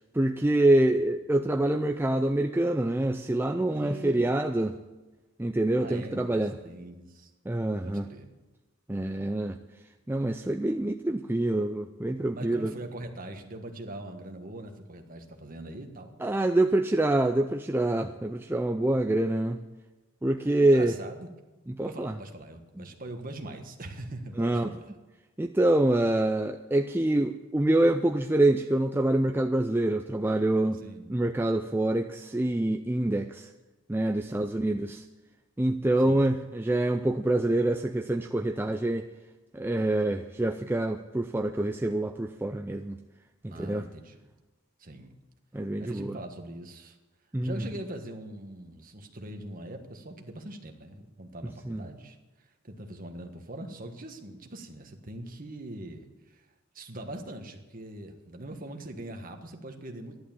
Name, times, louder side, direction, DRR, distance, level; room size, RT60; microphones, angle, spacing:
voice 1, 0.1-4.8 5.4-6.6 7.5-8.1 8.9-9.6 10.1-12.7 16.2-19.6 20.2-20.9 21.7-22.1 22.8-22.9 24.4-24.7 25.4-30.8 31.1-33.5 33.9-35.0 35.6-39.1 39.5-43.0 43.6-43.9 45.5-46.1 47.3-47.6 51.7-51.8, right 1 dB, 10° right, 5 dB, 0.4 m, -26 dB
voice 2, 3.7-4.5 5.8-7.3 7.8-8.3 12.3-16.2 20.6-21.3 21.8-24.9 30.8-31.2 34.2-34.5 36.0-36.2 43.5-44.2 44.8-45.1 45.8-47.0 47.4-56.5 56.7-60.2, right 1 dB, 40° right, 5 dB, 1.5 m, -42 dB
13.5 x 11.5 x 7.3 m, 1.1 s
head